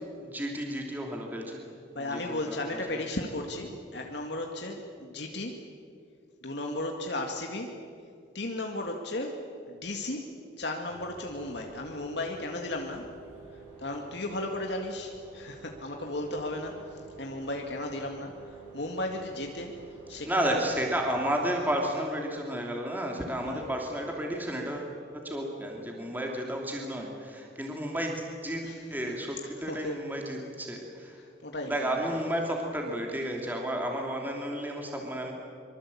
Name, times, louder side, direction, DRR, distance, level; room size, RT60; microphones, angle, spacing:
voice 1, 0.2-1.7 2.0-3.0 20.2-24.9 25.2-28.6 28.9-31.2 31.6-35.3, right 1 dB, 10° right, 0 dB, 2.9 m, -32 dB
voice 2, 2.0-5.6 6.4-7.7 8.3-10.2 10.6-13.0 13.8-18.3 18.7-19.7 20.1-20.6 23.4-23.6 28.6-28.8 29.1-29.2 29.7-30.0 31.2-32.2, left 1 dB, 60° left, 2 dB, 2.0 m, -35 dB
sound 1, 10.9-21.1, right 5 dB, 40° right, 7.7 m, -49 dB
25.0 x 24.0 x 8.5 m, 2.5 s
head